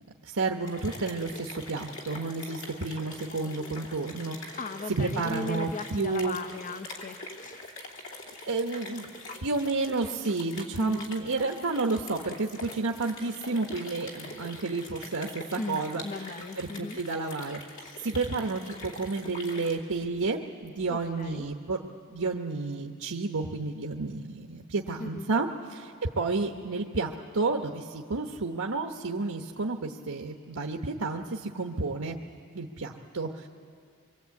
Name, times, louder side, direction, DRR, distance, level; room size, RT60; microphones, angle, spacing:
voice 1, 0.2-4.6 5.0-6.4 8.4-9.1 9.4-16.0 16.6-17.6 18.0-32.2 32.5-33.5, right 3 dB, 75° right, 1 dB, 1.1 m, -31 dB
sound 1, 0.6-19.8, left 2 dB, 60° left, 2.9 m, -44 dB
voice 2, 4.5-7.6 10.7-11.1 14.1-14.5 15.6-17.0 20.9-21.5 25.0-25.3, left 3 dB, 35° left, 8 dB, 0.7 m, -38 dB
25.0 x 23.0 x 8.4 m, 2.2 s
head